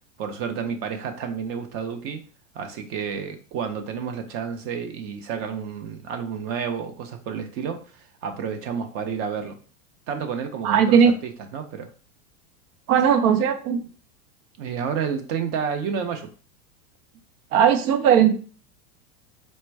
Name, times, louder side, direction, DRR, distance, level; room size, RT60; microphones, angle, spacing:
voice 1, 0.2-2.2 2.5-9.6 10.1-11.9 14.6-16.3, right 7 dB, 30° right, 6 dB, 0.5 m, -30 dB
voice 2, 10.6-11.1 12.9-13.8 17.5-18.3, right 8 dB, 70° right, 9 dB, 0.7 m, -18 dB
4.2 x 2.1 x 4.5 m, 0.40 s
supercardioid pair, 150°, 46 cm